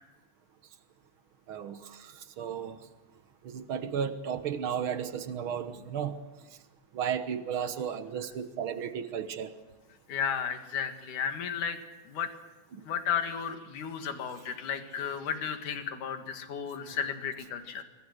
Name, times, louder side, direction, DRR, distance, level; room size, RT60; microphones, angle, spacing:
voice 1, 1.5-2.8 3.4-6.2 6.9-9.5 12.7-12.8, right 8 dB, 60° right, 1.4 m, -34 dB
voice 2, 10.1-11.8 12.1-12.3 12.8-17.8, left 7 dB, 65° left, 3.3 m, -33 dB
27.0 x 23.5 x 6.6 m
omnidirectional pair, 4.1 m